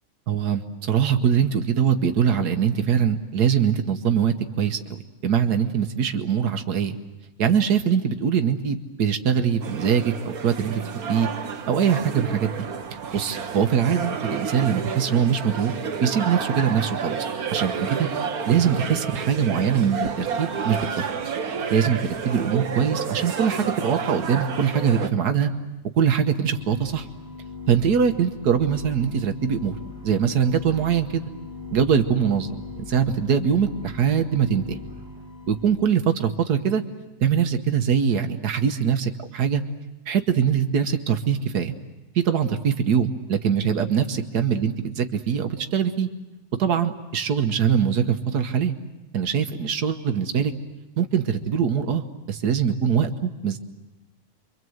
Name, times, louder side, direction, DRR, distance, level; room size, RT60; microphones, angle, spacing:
voice 1, 0.3-4.8 5.2-7.0 7.4-11.3 11.7-12.5 13.1-15.7 16.0-17.2 17.5-18.1 18.5-21.1 21.7-22.0 22.2-25.5 25.9-27.1 27.7-29.8 30.0-31.2 31.7-34.8 35.5-36.8 37.2-39.6 40.1-41.7 42.1-46.1 46.6-48.7 49.1-50.5 51.0-53.6, right 7 dB, 90° right, 6 dB, 1.7 m, -22 dB
sound 1, 9.6-25.1, right 6 dB, 70° right, 1.7 m, -30 dB
sound 2, 26.2-35.9, left 4 dB, 40° left, 5.4 m, -40 dB
28.5 x 24.0 x 7.9 m, 1.0 s
omnidirectional pair, 1.6 m